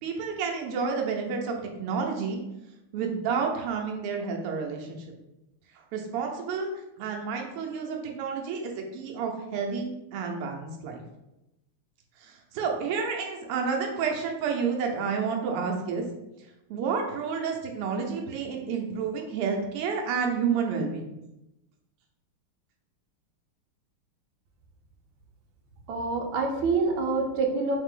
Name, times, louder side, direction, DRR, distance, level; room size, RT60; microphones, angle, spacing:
voice 1, 0.0-2.4 2.9-5.0 5.9-6.7 7.0-11.0 12.2-16.0 16.7-21.1, right 5 dB, 90° right, 2 dB, 1.6 m, -30 dB
voice 2, 25.9-27.8, right 4 dB, 70° right, 1 dB, 1.5 m, -26 dB
4.0 x 3.3 x 3.6 m, 0.92 s
omnidirectional pair, 2.4 m